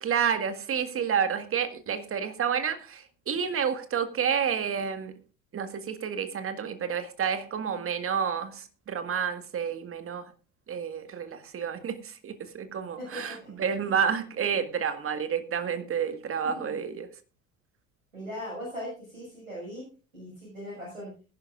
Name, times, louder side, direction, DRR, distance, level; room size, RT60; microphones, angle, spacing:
voice 1, 0.0-5.2 5.5-10.3 10.7-17.1, right 7 dB, 35° right, 1.8 m, -30 dB
voice 2, 13.0-13.5 13.8-13.9 16.6-16.7 18.1-19.8 20.1-21.1, equal, 85° right, 6.4 m, -39 dB
21.5 x 11.0 x 2.5 m
figure-of-eight pair, 65°, 40 cm